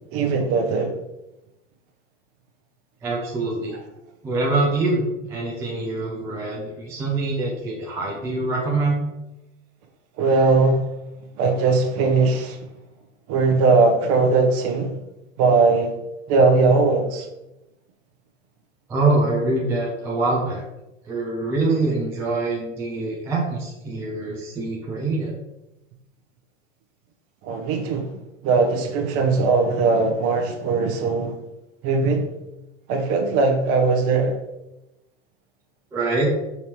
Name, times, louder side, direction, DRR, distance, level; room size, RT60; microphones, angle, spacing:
voice 1, 0.1-0.9 10.2-10.8 11.4-12.6 13.3-15.0 15.4-16.0 16.3-17.3 27.4-28.1 28.4-31.4 31.8-32.3 32.9-34.4, right 3 dB, 35° right, 0.8 m, -19 dB
voice 2, 3.0-3.8 4.2-5.0 5.3-9.0 18.9-20.6 21.0-25.4 35.9-36.3, right 2 dB, 10° right, 0.3 m, -24 dB
5.3 x 2.7 x 2.9 m
hypercardioid pair, 100°, 40 cm